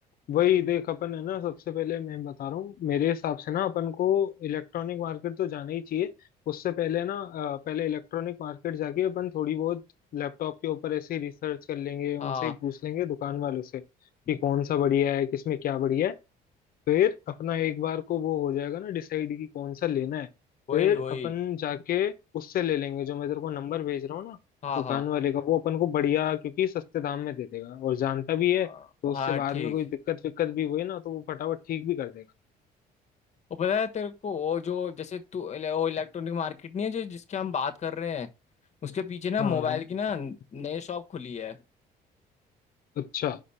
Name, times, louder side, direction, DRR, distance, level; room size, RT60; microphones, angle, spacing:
voice 1, 0.3-6.1 6.5-9.8 10.1-13.8 14.3-16.2 16.9-20.3 20.7-24.4 24.8-28.7 29.0-32.3 39.4-39.8 43.0-43.4, left 11 dB, 60° left, 0.9 m, -29 dB
voice 2, 12.2-12.5 20.7-21.3 24.6-25.0 29.0-29.7 33.5-38.3 38.8-41.6, left 7 dB, 40° left, 1.2 m, -31 dB
5.4 x 5.1 x 5.6 m
cardioid pair, 110°, 17 cm